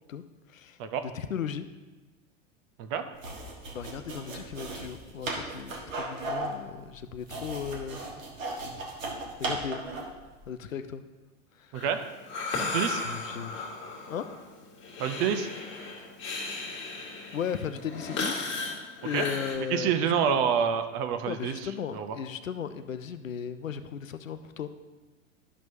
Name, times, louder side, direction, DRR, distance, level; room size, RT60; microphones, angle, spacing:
voice 1, 1.1-1.7 3.7-8.0 9.4-9.8 10.5-11.0 11.6-11.7 13.0-13.6 14.1-14.3 17.3-20.0 20.3-20.4 21.3-24.7, left 8 dB, 80° left, 11 dB, 0.6 m, -36 dB
sound 1, 3.1-10.2, right 2 dB, 70° right, 1.5 m, -36 dB
Breathing, 11.7-19.6, left 3 dB, 30° left, 1.7 m, -35 dB
voice 2, 15.0-15.5 19.1-19.3 19.7-21.5 21.9-22.1, right 7 dB, 35° right, 9 dB, 0.6 m, -27 dB
12.0 x 6.0 x 2.7 m, 1.2 s
figure-of-eight pair, 85°, 39 cm